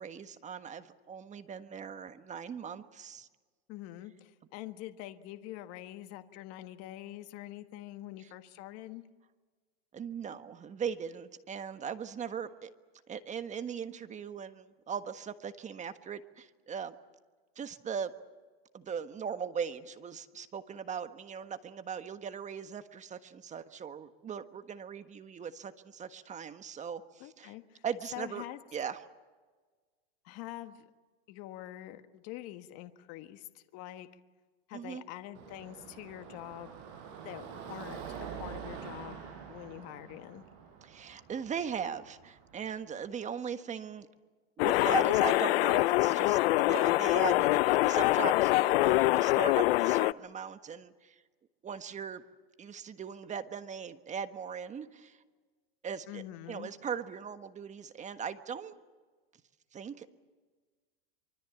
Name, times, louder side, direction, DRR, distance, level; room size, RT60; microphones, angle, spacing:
voice 1, 0.0-3.3 8.2-8.3 9.9-12.7 13.1-16.9 17.6-18.1 18.7-27.5 27.8-28.4 28.7-29.0 34.7-35.0 40.8-44.1 44.6-51.1 51.6-52.2 52.6-55.2 55.8-58.7 59.7-60.1, right 7 dB, 20° right, 10 dB, 1.4 m, -39 dB
voice 2, 3.7-9.0 27.2-27.8 28.1-28.6 30.2-30.8 31.3-34.1 34.7-36.8 37.2-40.4 56.1-56.7, left 14 dB, 45° left, 8 dB, 1.6 m, -45 dB
Car passing by / Traffic noise roadway noise / Engine, 35.3-42.7, right 7 dB, 55° right, 6.1 m, -46 dB
sound 1, 44.6-50.1, left 18 dB, 65° left, 0.7 m, -25 dB
25.0 x 24.5 x 7.2 m, 1.4 s
hypercardioid pair, 120°, 33 cm